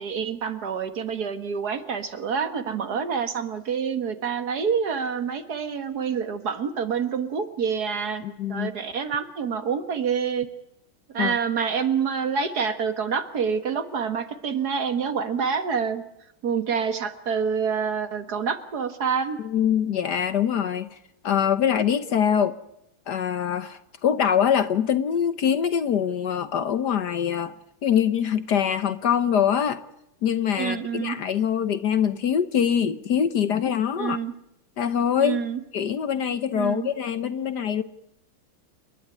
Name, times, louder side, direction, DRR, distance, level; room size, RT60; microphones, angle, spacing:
voice 1, 0.0-8.2 8.5-10.5 11.1-16.0 16.4-19.4 30.6-31.2 34.0-34.3 35.2-35.6 36.5-36.9, right 6 dB, 50° right, 10 dB, 2.0 m, -27 dB
voice 2, 8.2-8.7 11.2-11.4 19.4-21.0 21.2-22.5 23.1-27.5 27.8-29.8 30.2-34.2 34.8-35.4 35.7-37.8, left 8 dB, 60° left, 12 dB, 1.4 m, -24 dB
29.0 x 11.5 x 9.7 m, 0.86 s
omnidirectional pair, 2.3 m